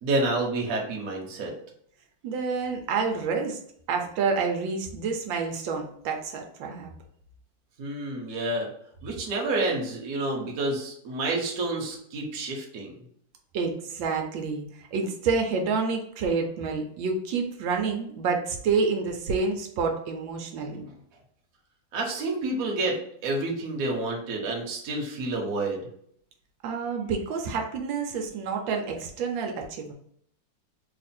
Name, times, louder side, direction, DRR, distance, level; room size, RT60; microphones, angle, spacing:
voice 1, 0.0-1.5 7.8-8.7 9.0-12.9 20.7-20.8 21.9-23.0 23.2-25.8, right 2 dB, 55° right, 0 dB, 1.2 m, -29 dB
voice 2, 2.2-3.6 3.9-6.9 13.5-20.8 26.6-29.9, right 5 dB, 85° right, 2 dB, 1.4 m, -28 dB
3.2 x 2.4 x 4.2 m, 0.66 s
omnidirectional pair, 2.0 m